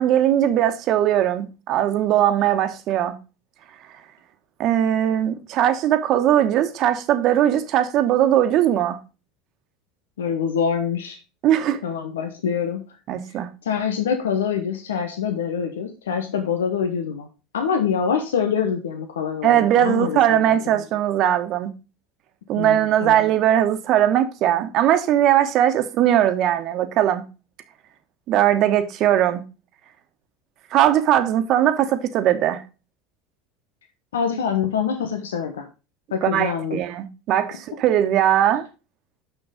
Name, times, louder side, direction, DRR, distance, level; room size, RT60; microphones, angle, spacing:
voice 1, 0.0-3.1 4.6-9.0 11.4-11.8 13.1-13.5 19.4-21.7 22.5-27.2 28.3-29.4 30.7-32.6 36.2-38.7, right 11 dB, 55° right, 1.2 m, -19 dB
voice 2, 10.2-11.2 11.8-12.8 13.7-17.3 17.5-20.5 22.6-23.2 34.1-35.7 36.1-36.8, left 7 dB, 90° left, 1.1 m, -25 dB
6.4 x 5.8 x 4.9 m
hypercardioid pair, 85°, 0 cm